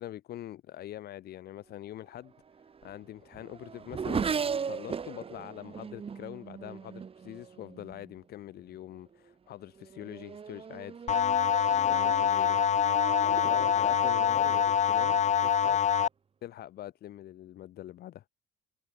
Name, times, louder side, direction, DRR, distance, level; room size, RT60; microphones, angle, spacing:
voice 1, 0.0-2.3 2.8-4.3 4.6-11.1 11.7-12.6 13.0-15.8 16.4-18.2, left 13 dB, 65° left, 7.0 m, -44 dB
Race car auto racing / Accelerating revving vroom, 2.3-8.1 8.9-9.3 9.7-15.7, right 6 dB, 35° right, 3.2 m, -39 dB
sound 1, 11.1-16.1, left 8 dB, 45° left, 1.8 m, -25 dB
cardioid pair, 110°, 17 cm